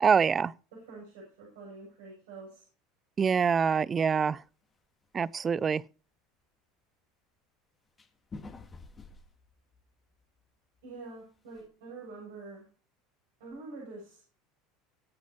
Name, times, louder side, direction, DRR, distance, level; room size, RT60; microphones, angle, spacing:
voice 1, 0.0-0.5 3.2-4.4 5.1-5.8, right 6 dB, 30° right, 0.5 m, -25 dB
voice 2, 0.9-2.6 10.8-12.7 13.4-14.2, right 3 dB, 75° right, 7.7 m, -46 dB
sound 1, 3.6-3.9 4.2-4.6 5.0-5.1 5.6-5.7 8.0-10.4 10.8-10.9 11.2-11.7, left 3 dB, 25° left, 3.0 m, -48 dB
23.5 x 8.4 x 2.9 m
hypercardioid pair, 75°, 0 cm